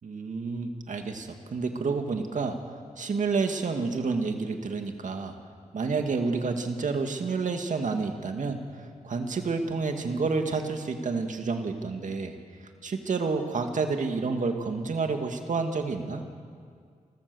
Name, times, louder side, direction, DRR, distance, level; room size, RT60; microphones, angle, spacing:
voice 1, 0.0-5.4 5.7-12.4 12.8-16.2, right 4 dB, 65° right, 5 dB, 2.2 m, -29 dB
29.5 x 14.5 x 7.1 m, 2.1 s
wide cardioid pair, 85°, 14 cm